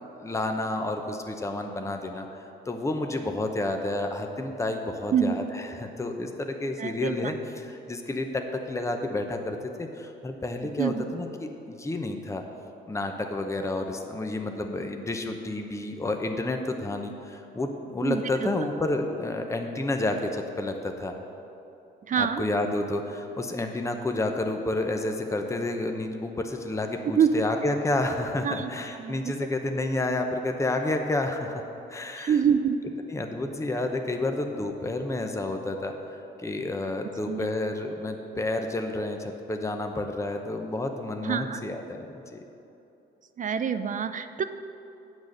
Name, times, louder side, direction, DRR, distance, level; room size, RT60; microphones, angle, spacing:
voice 1, 0.0-2.3 2.7-12.4 12.9-21.1 22.1-32.4 33.1-42.5, left 2 dB, 15° left, 4 dB, 0.8 m, -30 dB
voice 2, 6.8-7.3 10.8-11.0 18.0-18.5 22.1-22.4 27.2-27.3 28.4-28.7 29.0-29.2 32.2-32.8 37.3-37.5 41.2-41.6 43.4-44.4, right 7 dB, 40° right, 10 dB, 0.4 m, -26 dB
8.9 x 6.2 x 6.5 m, 2.8 s
cardioid pair, 90°, 20 cm